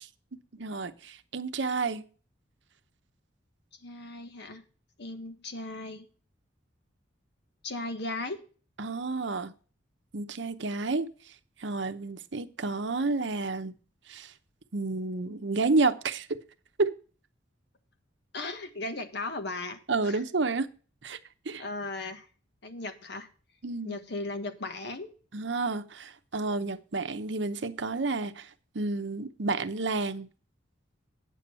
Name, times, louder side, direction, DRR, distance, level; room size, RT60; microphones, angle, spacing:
voice 1, 0.5-2.0 8.8-9.5 10.1-11.1 11.6-13.7 14.1-14.3 14.7-16.3 16.8-16.9 19.9-20.7 21.0-21.2 21.5-21.6 23.6-24.0 25.3-28.5 28.7-30.3, right 3 dB, 65° right, 0.8 m, -30 dB
voice 2, 3.8-4.6 5.0-6.1 7.6-8.4 18.3-20.2 21.6-22.3 22.6-23.3 23.8-25.1, left 2 dB, 60° left, 1.5 m, -37 dB
9.1 x 6.9 x 5.6 m
head